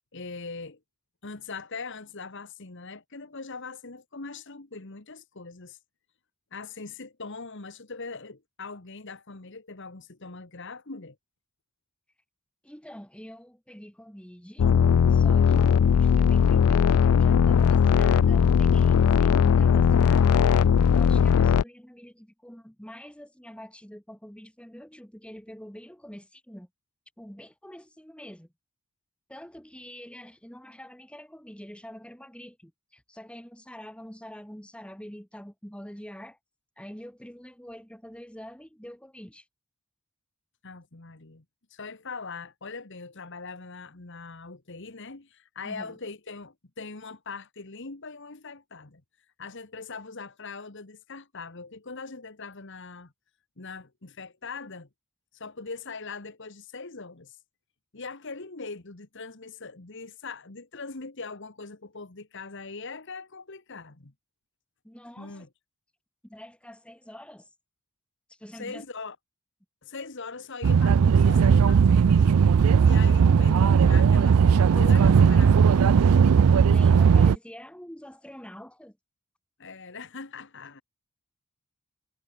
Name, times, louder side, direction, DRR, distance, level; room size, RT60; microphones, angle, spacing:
voice 1, 0.1-0.8 1.2-5.8 6.5-11.2 40.6-41.4 41.7-49.0 49.4-53.1 53.6-54.9 55.3-57.4 57.9-64.1 65.2-65.5 68.5-69.2 69.8-72.4 72.8-75.9 79.6-80.8, left 4 dB, 55° left, 1.5 m, -41 dB
voice 2, 12.6-14.7 15.1-20.5 20.9-26.7 27.2-28.5 29.3-36.4 36.8-39.4 45.6-46.0 64.8-65.5 66.2-67.5 68.3-68.8 76.6-79.0, equal, 5° left, 2.8 m, -45 dB
sound 1, 14.6-21.6, left 7 dB, 80° left, 0.4 m, -19 dB
sound 2, 70.6-77.4, right 6 dB, 80° right, 0.4 m, -18 dB
head